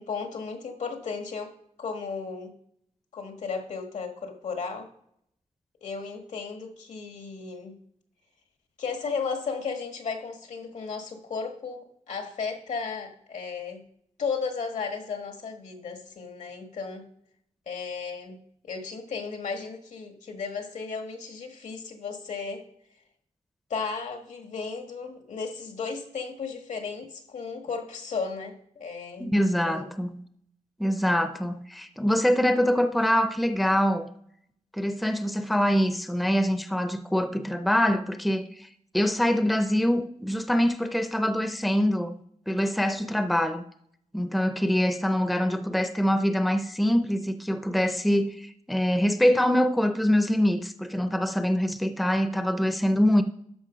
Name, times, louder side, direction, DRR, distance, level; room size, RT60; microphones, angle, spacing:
voice 1, 0.0-1.5 1.8-2.5 3.1-4.9 5.8-7.7 8.8-13.8 14.2-17.0 17.7-22.6 23.7-29.9, left 5 dB, 75° left, 1.6 m, -34 dB
voice 2, 29.2-30.2 30.8-34.1 34.7-38.7 38.9-43.6 44.1-53.2, equal, ahead, 0.5 m, -24 dB
12.5 x 5.3 x 5.1 m
wide cardioid pair, 145°, 13 cm